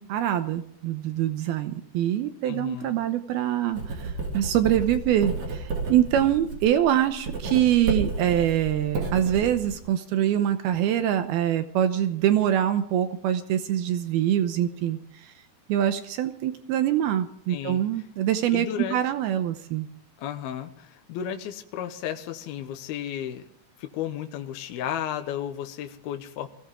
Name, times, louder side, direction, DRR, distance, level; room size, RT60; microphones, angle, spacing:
voice 1, 0.0-15.3 15.7-18.7 18.9-19.9, right 11 dB, 75° right, 9 dB, 2.7 m, -24 dB
voice 2, 2.4-3.0 17.5-17.8 18.5-19.0 20.2-23.4 23.8-26.5, left 10 dB, 75° left, 6 dB, 2.9 m, -33 dB
Writing, 3.7-9.8, right 3 dB, 45° right, 3.8 m, -32 dB
21.5 x 16.5 x 3.7 m, 0.64 s
omnidirectional pair, 4.6 m